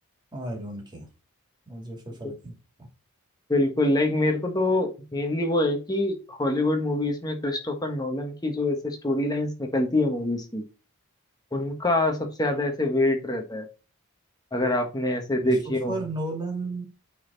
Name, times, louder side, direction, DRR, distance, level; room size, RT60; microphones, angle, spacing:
voice 1, 0.3-1.1 1.7-2.9 15.4-16.8, right 2 dB, 20° right, 2.3 m, -34 dB
voice 2, 3.5-10.6 11.5-13.6 14.5-16.0, left 1 dB, 15° left, 1.3 m, -25 dB
8.5 x 4.1 x 4.0 m
head